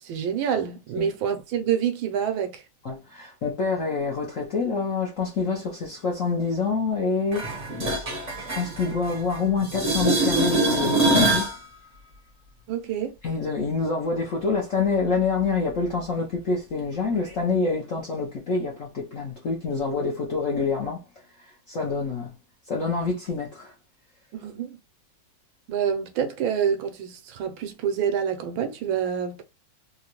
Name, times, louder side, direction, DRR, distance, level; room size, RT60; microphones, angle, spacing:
voice 1, 0.0-2.6 12.7-13.2 24.3-24.8 25.7-29.4, right 8 dB, 75° right, 1.4 m, -27 dB
voice 2, 2.8-7.5 8.5-11.5 13.2-21.0 21.4-22.3 22.7-23.7, left 4 dB, 60° left, 0.8 m, -26 dB
sound 1, 7.3-9.4 9.6-11.6 17.3-17.4, right 1 dB, 35° right, 0.7 m, -24 dB
3.8 x 2.2 x 2.9 m
omnidirectional pair, 2.2 m